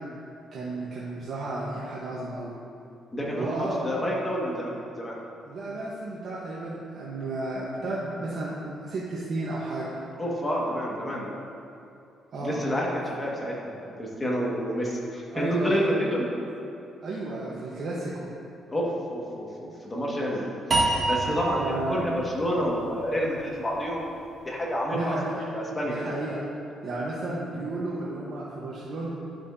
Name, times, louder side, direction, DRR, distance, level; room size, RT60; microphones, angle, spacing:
voice 1, 0.5-2.6 3.4-3.8 5.4-8.6 8.8-10.0 12.3-12.6 15.3-15.9 17.0-18.3 21.6-22.0 24.9-25.5 25.8-26.4 26.8-29.1, right 2 dB, 60° right, -6 dB, 1.2 m, -32 dB
voice 2, 3.1-5.1 10.2-11.3 12.4-16.3 18.7-20.4 20.8-24.2 24.4-25.2 25.5-26.1, equal, 20° left, -4 dB, 1.8 m, -29 dB
sound 1, 20.7-23.9, right 2 dB, 35° right, 1.5 m, -29 dB
11.5 x 6.2 x 2.7 m, 2.6 s
cardioid pair, 90°, 0 cm